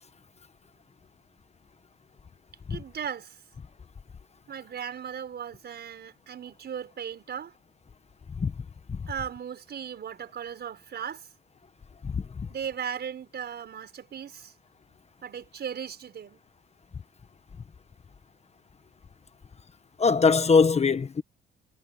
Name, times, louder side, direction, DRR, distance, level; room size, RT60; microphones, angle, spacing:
voice 1, 2.7-3.4 4.5-7.5 9.1-11.3 12.5-14.5 15.2-16.4, right 8 dB, 55° right, 5.5 m, -37 dB
voice 2, 20.0-21.2, left 5 dB, 35° left, 1.3 m, -21 dB
cardioid pair, 90°, 20 cm